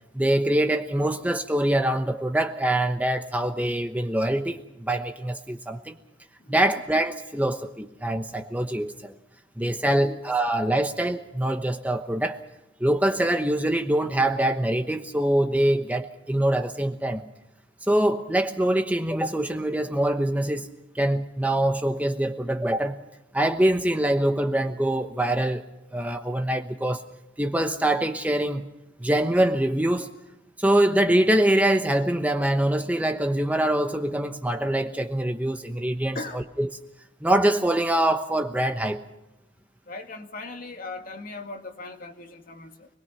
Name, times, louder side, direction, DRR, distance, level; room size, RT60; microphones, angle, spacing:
voice 1, 0.1-5.9 6.5-9.1 9.6-12.4 12.8-17.3 17.9-20.7 20.9-23.0 23.3-25.6 25.9-27.0 27.4-28.6 29.0-30.1 30.6-36.7 37.2-39.0, right 1 dB, 10° right, 1.0 m, -24 dB
voice 2, 36.1-36.5 39.9-42.9, left 2 dB, 45° left, 2.2 m, -38 dB
26.0 x 21.0 x 5.8 m
head